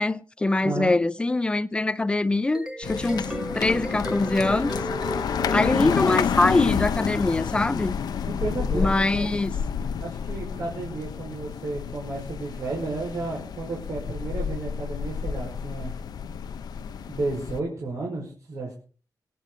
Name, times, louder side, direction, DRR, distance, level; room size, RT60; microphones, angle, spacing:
voice 1, 0.0-4.8 5.5-7.9 8.7-9.5, left 2 dB, 15° left, 0.6 m, -23 dB
voice 2, 0.6-1.0 8.2-9.3 10.0-15.9 17.1-18.7, right 3 dB, 50° right, 5.2 m, -32 dB
sound 1, 2.3-6.7, right 1 dB, 10° right, 1.2 m, -35 dB
sound 2, 2.8-17.6, left 7 dB, 70° left, 0.8 m, -30 dB
25.5 x 9.4 x 4.0 m
wide cardioid pair, 170°, 7 cm